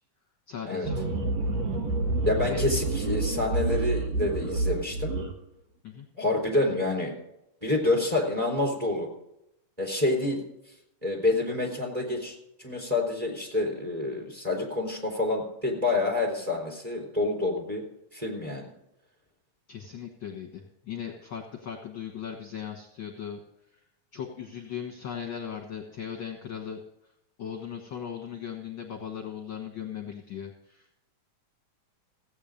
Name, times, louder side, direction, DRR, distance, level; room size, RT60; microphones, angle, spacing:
voice 1, 0.5-1.0 2.5-2.7 5.8-6.1 19.7-23.4 23.7-23.8 24.1-26.8 27.4-31.0, left 8 dB, 50° left, 2 dB, 1.6 m, -38 dB
sound 1, 0.8-5.3, right 2 dB, 60° right, 2.7 m, -28 dB
voice 2, 2.2-5.1 6.2-7.1 7.6-9.1 9.8-10.4 11.0-17.8 18.1-18.7, left 2 dB, 10° right, 1 dB, 3.8 m, -28 dB
16.5 x 8.8 x 5.1 m, 0.83 s
omnidirectional pair, 3.6 m